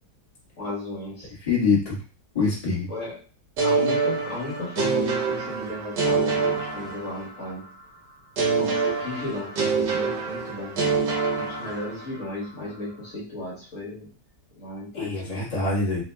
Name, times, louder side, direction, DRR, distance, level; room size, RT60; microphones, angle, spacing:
voice 1, 0.6-1.3 2.9-3.2 3.6-7.8 8.6-11.0 11.3-14.1 14.6-15.4, left 2 dB, 50° left, -7 dB, 1.6 m, -35 dB
voice 2, 1.4-2.0 2.3-2.9 14.9-16.0, left 4 dB, 20° left, -7 dB, 1.5 m, -24 dB
sound 1, 3.6-7.5 8.4-12.2, right 4 dB, 80° right, 1.5 m, -26 dB
3.6 x 2.7 x 3.4 m, 0.37 s
omnidirectional pair, 1.8 m